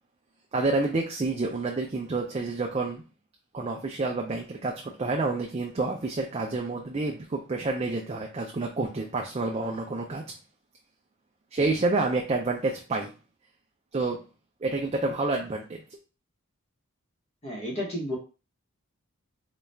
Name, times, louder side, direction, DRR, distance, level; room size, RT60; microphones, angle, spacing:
voice 1, 0.5-3.0 3.5-10.3 11.5-13.1 13.9-14.2 14.6-16.0, right 3 dB, 30° right, 1 dB, 0.4 m, -29 dB
voice 2, 17.4-18.2, left 1 dB, 30° left, -2 dB, 1.0 m, -32 dB
4.0 x 2.3 x 3.3 m, 0.33 s
head